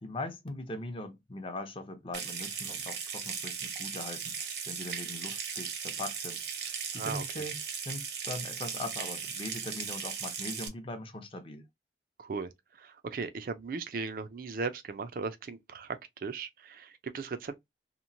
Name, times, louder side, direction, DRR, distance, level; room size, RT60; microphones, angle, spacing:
voice 1, 0.0-7.6 7.9-11.7, left 2 dB, 30° left, 0.6 m, -41 dB
Water tap faucet / Sink (filling or washing) / Trickle dribble, 2.1-10.7, right 6 dB, 75° right, 0.8 m, -37 dB
voice 2, 6.9-7.4 12.2-17.6, right 4 dB, 50° right, 0.4 m, -37 dB
2.9 x 2.1 x 2.5 m
head